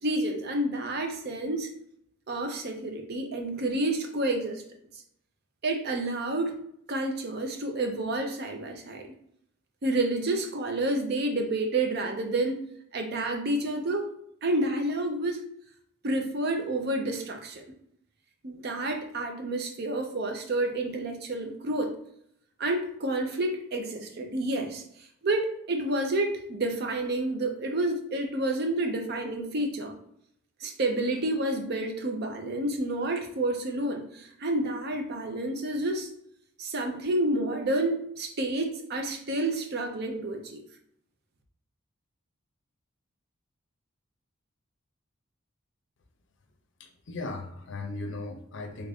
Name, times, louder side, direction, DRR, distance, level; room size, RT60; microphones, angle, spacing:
voice 1, 0.0-1.7 2.3-4.6 5.6-6.5 6.9-9.0 9.8-12.6 12.9-14.1 14.4-15.4 16.0-17.6 18.4-21.9 22.6-24.8 25.2-29.9 30.6-36.1 36.6-40.6, right 2 dB, 50° right, 3 dB, 0.6 m, -29 dB
voice 2, 46.8-48.9, left 2 dB, 60° left, 4 dB, 0.5 m, -37 dB
3.4 x 2.5 x 3.4 m, 0.71 s
head